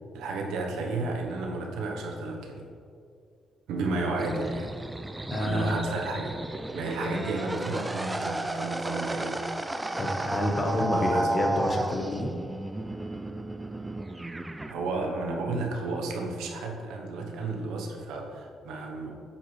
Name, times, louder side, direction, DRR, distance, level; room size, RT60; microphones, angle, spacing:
voice 1, 0.1-2.7 3.7-4.7 5.3-6.4 6.7-9.4 10.9-11.3 14.7-19.1, right 3 dB, 90° right, 1 dB, 0.9 m, -32 dB
sound 1, 4.2-14.7, right 2 dB, 15° right, 0.4 m, -33 dB
voice 2, 5.3-5.8 10.0-12.3, left 1 dB, 35° left, 2 dB, 1.1 m, -28 dB
8.6 x 5.1 x 3.2 m, 2.4 s
cardioid pair, 90°, 0 cm